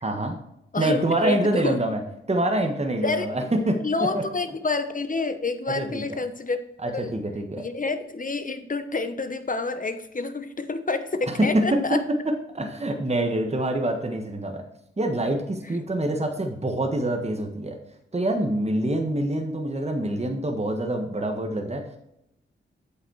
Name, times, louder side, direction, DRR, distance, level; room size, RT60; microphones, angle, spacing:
voice 1, 0.0-0.4 0.8-2.0 2.3-3.8 4.1-4.2 5.7-6.0 6.8-7.6 11.3-11.8 12.5-14.6 15.0-17.8 18.1-22.0, right 1 dB, 30° right, 3 dB, 1.5 m, -25 dB
voice 2, 0.7-1.8 3.0-3.3 3.8-6.6 6.9-7.2 7.6-12.0, left 3 dB, 40° left, 9 dB, 1.1 m, -28 dB
8.5 x 5.5 x 4.7 m, 0.81 s
cardioid pair, 45°, 21 cm